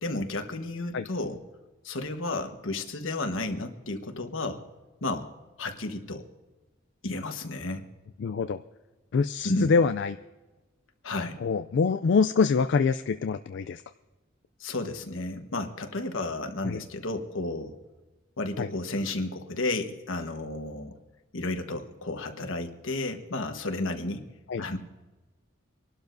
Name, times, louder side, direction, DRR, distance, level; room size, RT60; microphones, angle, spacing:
voice 1, 0.0-1.4 1.8-4.6 5.0-5.3 5.6-6.3 7.0-7.8 9.4-9.7 11.0-11.4 14.6-17.7 18.4-21.0 21.3-24.2 24.6-24.8, left 2 dB, 80° left, 6 dB, 1.3 m, -32 dB
voice 2, 8.2-8.6 9.1-10.2 11.4-13.8 16.6-16.8 18.6-18.7 24.5-24.6, left 5 dB, 60° left, 9 dB, 0.4 m, -25 dB
26.5 x 12.0 x 2.6 m, 1.2 s
head